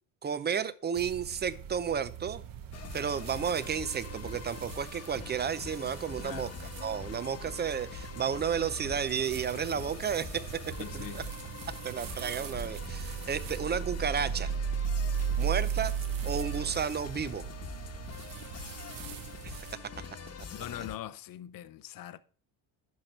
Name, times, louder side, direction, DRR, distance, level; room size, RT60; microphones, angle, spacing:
voice 1, 0.2-2.4 2.9-6.5 6.8-11.2 11.8-14.5 15.4-15.9 16.2-17.4 19.4-19.6, right 7 dB, 25° right, 0.5 m, -32 dB
sound 1, 1.0-19.7, right 7 dB, 50° right, 0.9 m, -38 dB
sound 2, 2.7-21.0, left 5 dB, 35° left, 1.2 m, -44 dB
voice 2, 6.2-6.6 10.8-11.3 18.5-19.0 20.5-22.2, left 12 dB, 50° left, 0.7 m, -43 dB
10.5 x 5.9 x 4.4 m
cardioid pair, 115°, 42 cm